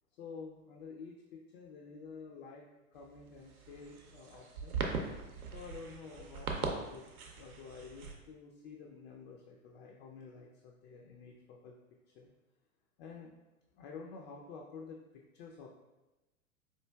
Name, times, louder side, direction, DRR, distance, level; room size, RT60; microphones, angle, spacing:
voice 1, 0.1-2.7 2.9-4.8 5.5-7.1 7.4-11.8 12.1-12.3 13.0-13.3 13.7-15.7, left 5 dB, 50° left, -1 dB, 0.5 m, -50 dB
sound 1, 2.9-8.2, right 4 dB, 80° right, 0.7 m, -40 dB
4.5 x 2.4 x 2.2 m, 1.0 s
hypercardioid pair, 100°, 43 cm